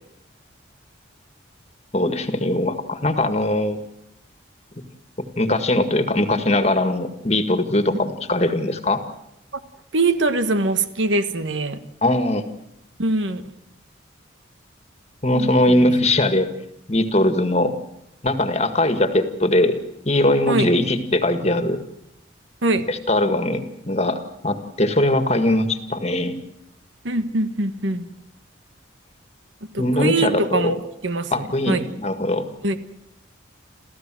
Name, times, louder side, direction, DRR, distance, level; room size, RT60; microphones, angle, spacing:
voice 1, 1.9-3.8 5.4-9.0 12.0-12.4 15.2-16.5 16.9-17.7 18.2-19.7 20.0-21.8 22.9-26.4 29.8-30.7 31.3-32.5, left 1 dB, 35° left, 9 dB, 1.8 m, -20 dB
voice 2, 9.9-11.8 13.0-13.4 15.3-15.9 20.5-20.7 22.6-22.8 27.0-28.0 29.7-31.9 32.6-32.8, right 2 dB, 75° right, 10 dB, 1.5 m, -23 dB
28.0 x 15.0 x 7.7 m, 0.82 s
head